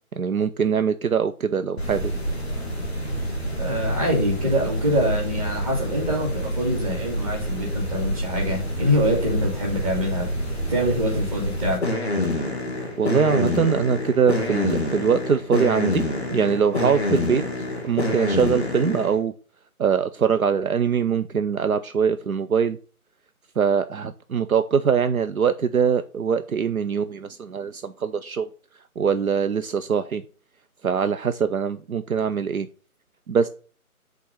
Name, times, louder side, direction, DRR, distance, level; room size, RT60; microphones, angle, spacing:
voice 1, 0.2-2.1 13.0-16.0 16.3-17.4 17.8-19.3 19.8-22.8 23.6-28.5 29.0-30.2 30.8-32.7 33.3-33.5, right 6 dB, 70° right, 10 dB, 0.6 m, -22 dB
sound 1, 1.8-19.2, left 1 dB, 5° right, 0.8 m, -27 dB
voice 2, 3.6-10.3 10.7-11.8, equal, 25° right, -1 dB, 2.2 m, -24 dB
5.8 x 3.8 x 5.6 m, 0.38 s
figure-of-eight pair, 155°, 44 cm